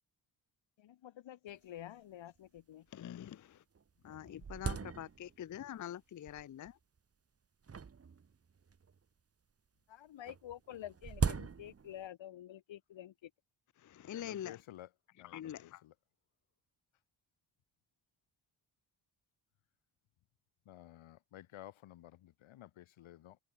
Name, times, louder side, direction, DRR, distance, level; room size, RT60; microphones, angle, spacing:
voice 1, 0.8-2.9 9.9-13.3, left 12 dB, 70° left, 1.4 m, -49 dB
sound 1, 1.5-1.6 1.8-1.9 2.6-2.7 3.3-3.4 3.8-5.5 6.3-6.7 7.6-9.0 10.2-12.1, right 6 dB, 30° right, 1.2 m, -39 dB
voice 2, 2.9-3.6 4.0-6.8 13.8-14.6 15.3-15.8, left 11 dB, 40° left, 0.5 m, -45 dB
voice 3, 14.1-14.9 15.2-15.9 20.6-23.4, left 13 dB, 85° left, 1.4 m, -54 dB
cardioid pair, 95°, 47 cm